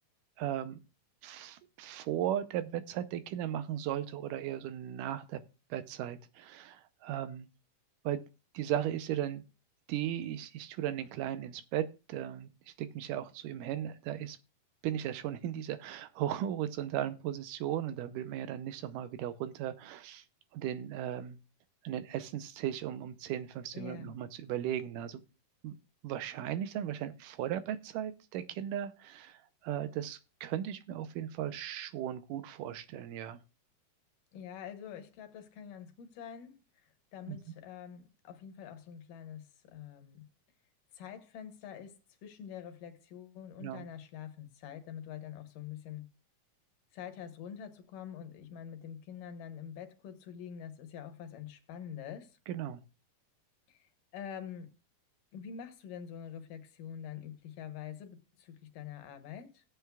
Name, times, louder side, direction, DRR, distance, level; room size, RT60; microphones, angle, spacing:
voice 1, 0.4-0.8 1.2-5.4 5.7-7.5 8.0-8.2 8.5-9.4 9.9-12.5 12.8-14.4 14.8-20.2 20.5-21.4 21.8-25.2 25.6-25.8 26.0-33.4 37.3-37.4 43.6-43.9 52.5-52.8, right 11 dB, 80° right, 2.2 m, -36 dB
voice 2, 23.7-24.1 34.3-40.3 40.9-46.1 46.9-52.4 53.7-54.7 55.3-59.6, left 8 dB, 80° left, 2.8 m, -46 dB
17.0 x 8.1 x 2.3 m
omnidirectional pair, 3.8 m